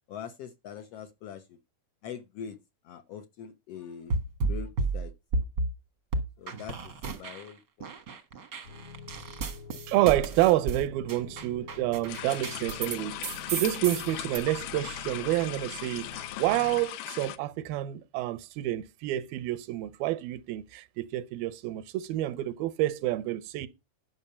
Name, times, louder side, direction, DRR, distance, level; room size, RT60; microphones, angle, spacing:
voice 1, 0.1-1.6 2.0-2.6 2.8-4.1 4.5-5.1 6.4-8.0, left 8 dB, 70° left, 1.5 m, -43 dB
sound 1, 4.1-5.7 6.1-7.5 7.8-13.0 13.2-14.4, right 3 dB, 55° right, 1.1 m, -32 dB
sound 2, 8.6-16.8, left 4 dB, 50° left, 1.8 m, -47 dB
voice 2, 9.9-23.7, right 15 dB, 85° right, 2.6 m, -28 dB
sound 3, 12.1-17.4, left 14 dB, 90° left, 2.8 m, -39 dB
12.0 x 6.2 x 5.5 m
omnidirectional pair, 4.2 m